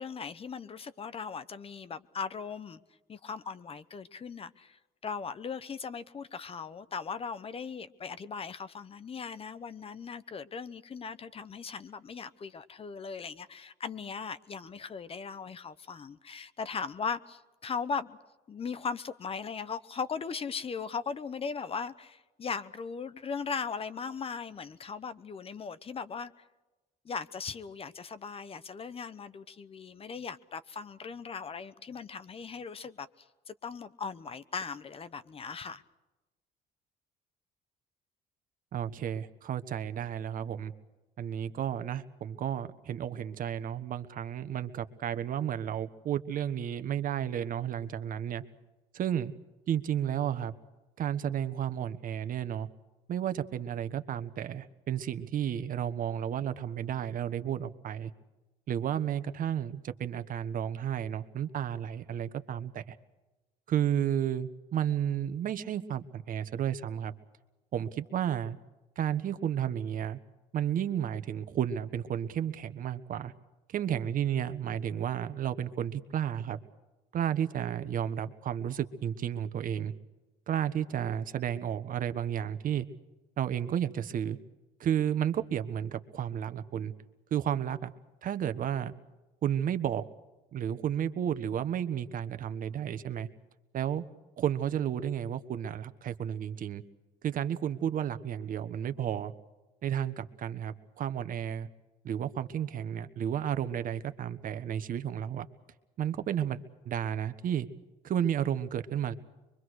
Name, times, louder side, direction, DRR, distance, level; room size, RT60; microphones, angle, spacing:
voice 1, 0.0-2.8 3.1-18.2 18.5-26.4 27.0-33.1 33.5-35.8, left 5 dB, 35° left, 1.0 m, -38 dB
voice 2, 38.7-40.7 41.2-48.4 48.9-49.3 49.7-50.5 51.0-52.7 53.1-58.1 58.7-63.0 63.7-67.1 67.7-68.6 69.0-70.2 70.5-73.3 73.7-76.6 77.1-79.9 80.5-82.9 83.4-84.4 84.8-86.9 87.3-87.9 88.2-88.9 89.4-90.0 90.5-93.3 93.7-94.0 94.4-96.8 97.2-99.3 99.8-101.7 102.0-105.5 106.0-106.6 106.8-107.7 108.0-109.1, right 9 dB, 55° right, 1.4 m, -32 dB
24.0 x 24.0 x 6.5 m
cardioid pair, 110°, 17 cm